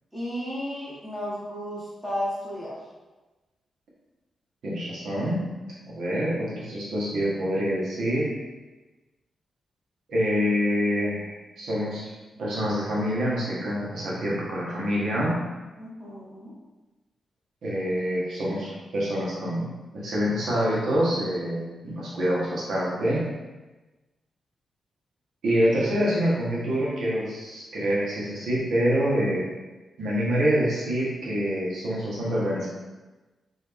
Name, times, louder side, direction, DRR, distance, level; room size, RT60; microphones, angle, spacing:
voice 1, 0.1-2.7 15.8-16.5, equal, 5° right, -9 dB, 0.9 m, -33 dB
voice 2, 4.6-5.4 5.9-8.3 10.1-11.3 11.6-12.1 12.4-15.4 17.6-19.7 19.9-23.3 25.4-29.5 30.0-32.7, equal, 75° right, -6 dB, 1.3 m, -26 dB
4.0 x 2.7 x 3.4 m, 1.2 s
wide cardioid pair, 150°, 0 cm